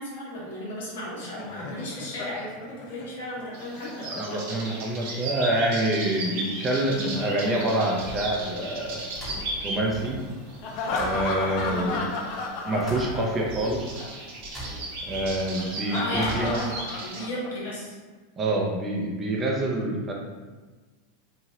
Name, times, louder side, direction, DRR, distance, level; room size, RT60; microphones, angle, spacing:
voice 1, 0.0-4.1 11.6-12.0 16.0-18.0, equal, 70° left, -5 dB, 1.0 m, -35 dB
Laughter, 1.0-5.1 6.8-8.9 10.6-13.7 13.9-14.1 15.6-17.7, left 3 dB, 50° left, 0.4 m, -34 dB
sound 1, 3.5-17.2, right 2 dB, 60° right, 0.7 m, -37 dB
voice 2, 4.1-9.0 9.6-10.2 10.9-12.0 12.6-14.0 15.1-16.6 18.4-20.1, right 1 dB, 30° right, -1 dB, 0.6 m, -26 dB
sound 2, 6.7-16.8, equal, 10° left, 1.1 m, -42 dB
3.2 x 2.3 x 2.8 m, 1.3 s
hypercardioid pair, 90°, 0 cm